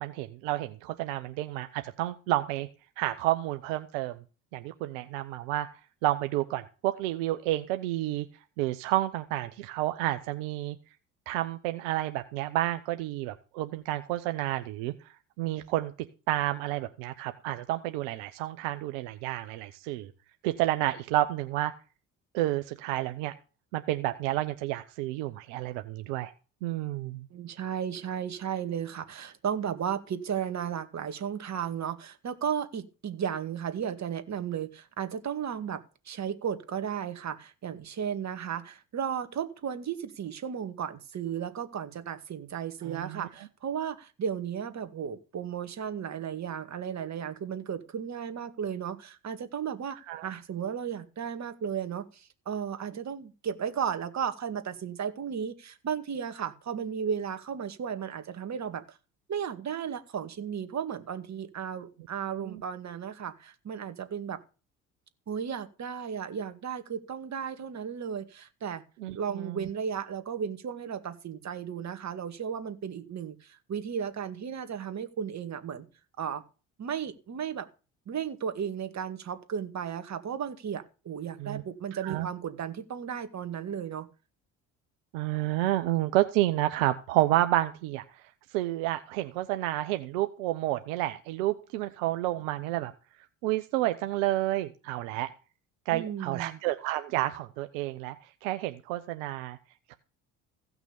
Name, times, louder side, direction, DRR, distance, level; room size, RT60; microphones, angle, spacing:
voice 1, 0.0-2.7 3.0-4.2 4.5-5.7 6.0-8.3 8.6-10.8 11.3-15.9 16.3-20.1 20.4-21.7 22.3-23.3 23.7-26.3 26.6-27.3 42.8-43.5 50.1-50.3 62.4-62.6 69.0-69.7 81.4-81.6 81.9-82.3 85.1-92.9 93.4-95.3 95.9-98.2 98.4-99.6 99.9-100.0, right 15 dB, 80° right, 1.0 m, -30 dB
voice 2, 27.3-50.0 50.2-58.8 59.3-64.4 65.3-68.8 69.2-73.4 73.7-75.8 76.2-76.4 76.8-77.7 78.1-84.1 95.9-96.6, right 8 dB, 45° right, 2.1 m, -34 dB
16.0 x 6.1 x 7.0 m
hypercardioid pair, 65°, 38 cm